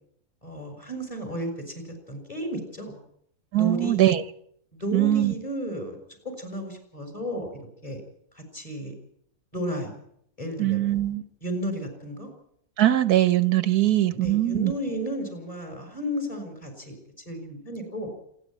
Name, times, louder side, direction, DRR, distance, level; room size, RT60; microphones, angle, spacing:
voice 1, 0.4-3.0 3.5-4.1 4.7-6.0 6.4-7.5 7.8-8.0 8.3-8.9 9.5-9.9 10.4-11.0 11.4-12.3 14.1-17.0 17.3-18.1, right 1 dB, 25° left, 4 dB, 6.3 m, -33 dB
voice 2, 3.5-4.2 4.9-5.3 10.6-11.2 12.8-14.7, right 13 dB, 85° right, 13 dB, 1.5 m, -21 dB
27.5 x 10.5 x 9.2 m, 0.70 s
omnidirectional pair, 1.6 m